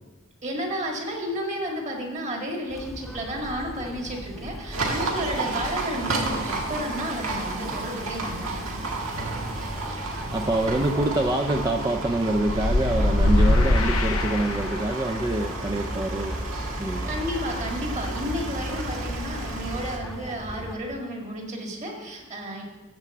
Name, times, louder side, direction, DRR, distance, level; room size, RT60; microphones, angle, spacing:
voice 1, 0.4-8.5 9.8-10.0 17.1-22.6, equal, 35° right, 0 dB, 1.9 m, -32 dB
sound 1, 2.7-20.8, equal, ahead, 0.9 m, -37 dB
Livestock farm animals working animals, 4.7-20.0, right 2 dB, 80° right, 1.6 m, -32 dB
voice 2, 10.3-16.4 16.7-17.2, right 1 dB, 20° right, 5 dB, 0.4 m, -26 dB
sound 2, 12.5-15.1, left 1 dB, 85° left, 0.8 m, -22 dB
13.5 x 4.6 x 7.1 m, 1.2 s
head